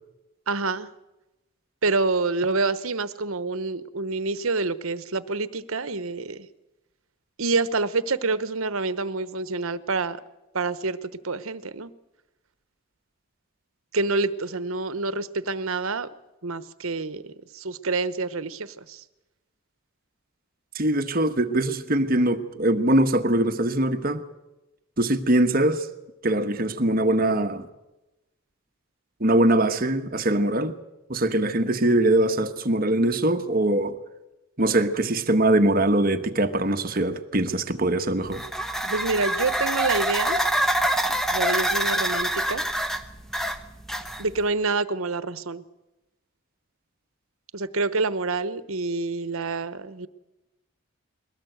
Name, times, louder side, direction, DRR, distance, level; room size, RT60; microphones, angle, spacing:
voice 1, 0.5-0.9 1.8-6.5 7.4-10.2 10.5-11.9 13.9-16.1 16.4-19.0 38.8-40.4 41.1-42.6 44.2-45.6 47.5-50.1, right 3 dB, 75° right, 15 dB, 1.0 m, -27 dB
voice 2, 20.7-24.2 25.0-25.9 26.2-27.7 29.2-30.8 31.1-34.0 34.6-38.4, right 1 dB, 40° right, 8 dB, 1.2 m, -22 dB
sound 1, 38.3-44.4, right 1 dB, ahead, 1.0 m, -26 dB
22.0 x 18.0 x 8.0 m, 1.0 s
head